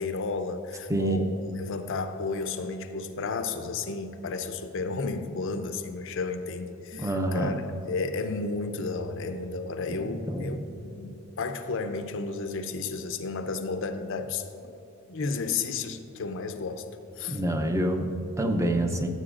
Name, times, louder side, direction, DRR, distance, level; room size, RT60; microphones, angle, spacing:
voice 1, 0.0-7.6 7.9-10.6 11.0-14.5 15.1-16.9 17.2-17.4, left 4 dB, 65° left, 8 dB, 0.6 m, -32 dB
voice 2, 0.9-1.2 6.9-7.6 9.9-10.7 17.3-19.1, right 1 dB, 15° right, 4 dB, 0.6 m, -27 dB
14.5 x 7.9 x 2.5 m, 3.0 s
head